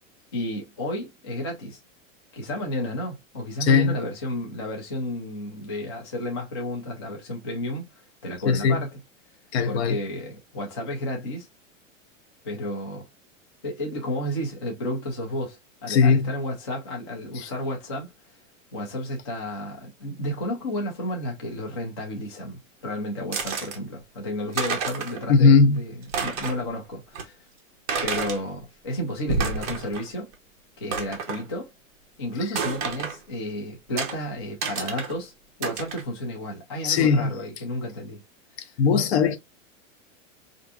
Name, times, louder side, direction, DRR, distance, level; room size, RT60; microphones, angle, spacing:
voice 1, 0.3-1.8 2.3-7.9 8.2-9.0 9.7-11.5 12.4-13.0 13.6-18.1 18.7-27.3 28.0-30.3 30.8-31.7 32.2-35.3 35.6-38.2, left 1 dB, 25° left, 0.3 m, -32 dB
voice 2, 3.6-4.0 8.4-8.8 9.5-10.0 15.9-16.3 17.3-17.5 25.3-25.8 36.8-37.3 38.8-39.4, left 5 dB, 55° left, 0.6 m, -19 dB
sound 1, 23.3-23.8 24.3-24.4 24.5-25.2 25.6-25.7 26.0-26.7 27.1-27.2 27.9-28.4 29.1-30.1 30.3-30.4 30.9-31.4 32.5-33.2 34.0-34.1 34.6-35.1 35.6-36.0, right 5 dB, 30° right, 0.7 m, -29 dB
4.4 x 2.5 x 2.3 m
supercardioid pair, 180°, 39 cm